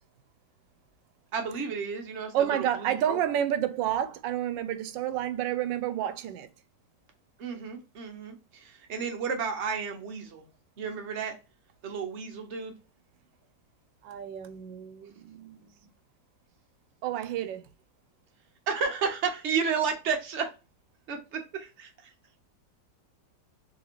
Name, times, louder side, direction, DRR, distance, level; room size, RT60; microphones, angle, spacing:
voice 1, 1.3-3.2 7.4-10.4 10.8-11.3 11.8-12.7 18.7-20.5 21.1-22.1, right 6 dB, 45° right, 1.2 m, -32 dB
voice 2, 2.3-6.5 14.0-15.9 17.0-17.6, right 10 dB, 90° right, 1.3 m, -30 dB
3.9 x 3.4 x 3.0 m
omnidirectional pair, 1.9 m